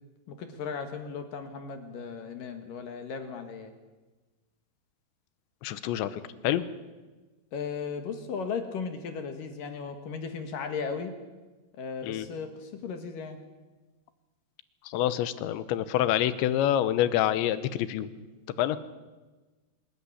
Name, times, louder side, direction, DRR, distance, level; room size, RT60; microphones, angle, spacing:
voice 1, 0.3-3.7 7.5-11.1 11.8-13.4 18.7-18.8, left 5 dB, 60° left, 7 dB, 2.7 m, -36 dB
voice 2, 5.6-6.6 12.0-12.3 14.9-18.1 18.6-18.8, left 12 dB, 85° left, 14 dB, 3.2 m, -27 dB
24.5 x 14.0 x 9.8 m, 1.2 s
omnidirectional pair, 5.2 m